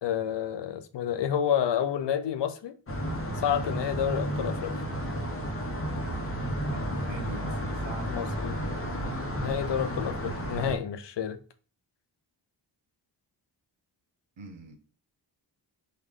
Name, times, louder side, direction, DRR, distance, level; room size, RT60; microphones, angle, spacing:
voice 1, 0.0-2.8 3.4-4.8 8.1-8.6 9.4-11.4, left 9 dB, 70° left, 0.5 m, -29 dB
sound 1, 2.9-10.8, equal, 30° left, 0.8 m, -32 dB
voice 2, 6.7-8.7 14.4-14.7, right 3 dB, 75° right, 0.9 m, -44 dB
3.2 x 2.2 x 3.6 m
wide cardioid pair, 90°, 45 cm